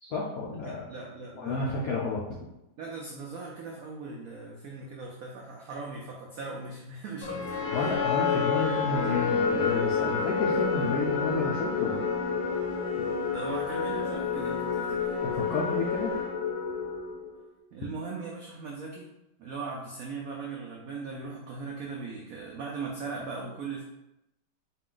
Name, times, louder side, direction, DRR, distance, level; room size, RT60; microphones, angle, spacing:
voice 1, 0.0-0.8 1.4-2.4 7.7-12.0 15.3-16.1, left 3 dB, 75° left, -3 dB, 0.8 m, -31 dB
voice 2, 0.5-1.7 2.8-7.9 13.3-15.0 17.7-19.1 19.4-23.8, right 4 dB, 80° right, -2 dB, 0.7 m, -39 dB
sound 1, 7.2-17.4, left 5 dB, 90° left, 1.5 m, -29 dB
4.1 x 2.4 x 3.7 m, 0.91 s
omnidirectional pair, 2.1 m